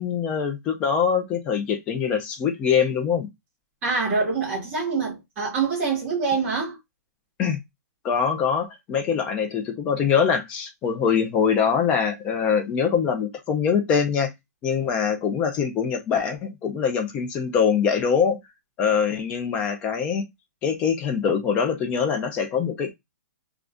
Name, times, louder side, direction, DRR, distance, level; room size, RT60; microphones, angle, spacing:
voice 1, 0.0-3.3 7.4-7.6 8.0-14.3 14.6-18.4 18.8-20.2 20.6-22.9, left 7 dB, 10° left, 0.4 m, -23 dB
voice 2, 3.8-6.8, right 4 dB, 15° right, 1.2 m, -25 dB
2.5 x 2.4 x 3.4 m
hypercardioid pair, 175°, 9 cm